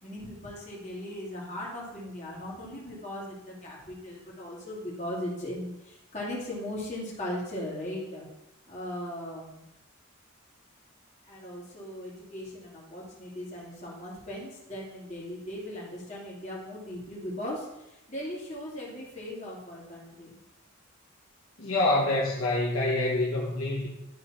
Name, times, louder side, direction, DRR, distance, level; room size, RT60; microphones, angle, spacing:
voice 1, 0.0-8.3 8.7-9.7 11.2-20.4, left 1 dB, 35° left, -6 dB, 2.4 m, -38 dB
voice 2, 21.6-23.9, left 2 dB, 75° left, -3 dB, 1.5 m, -26 dB
11.0 x 3.9 x 4.3 m, 0.92 s
head